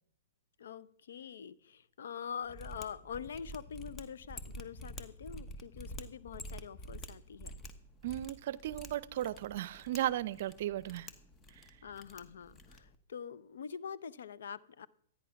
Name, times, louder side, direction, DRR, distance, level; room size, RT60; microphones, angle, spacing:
voice 1, 0.6-7.6 11.8-14.9, left 7 dB, 80° left, 15 dB, 0.7 m, -45 dB
Mechanisms, 2.5-12.9, equal, 20° left, 1.2 m, -48 dB
voice 2, 8.0-11.1, right 13 dB, 60° right, 21 dB, 0.6 m, -35 dB
13.5 x 9.8 x 5.8 m, 0.67 s
hypercardioid pair, 145°, 0 cm